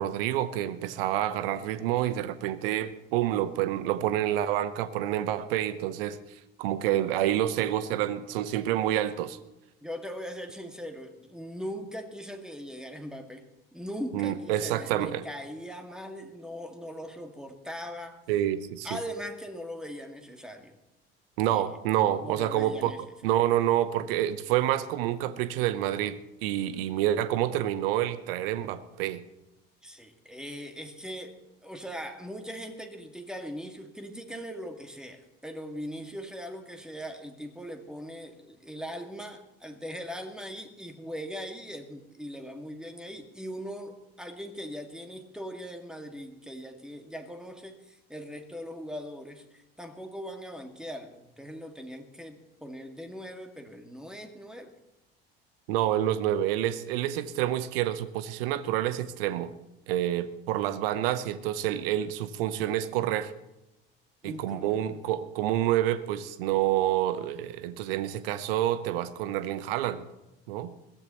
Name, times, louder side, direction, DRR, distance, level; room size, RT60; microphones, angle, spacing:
voice 1, 0.0-6.2 6.6-9.4 14.1-15.2 18.3-19.0 21.4-22.9 23.2-29.2 55.7-59.5 59.9-63.3 64.2-70.1 70.5-70.7, right 12 dB, 65° right, 15 dB, 0.9 m, -28 dB
voice 2, 9.8-13.4 13.7-18.2 18.8-20.8 21.4-21.7 22.2-23.0 29.8-31.4 31.6-54.7 64.2-64.8 68.9-69.0, equal, ahead, 5 dB, 2.0 m, -40 dB
21.5 x 16.0 x 3.1 m, 0.93 s
figure-of-eight pair, 60°, 31 cm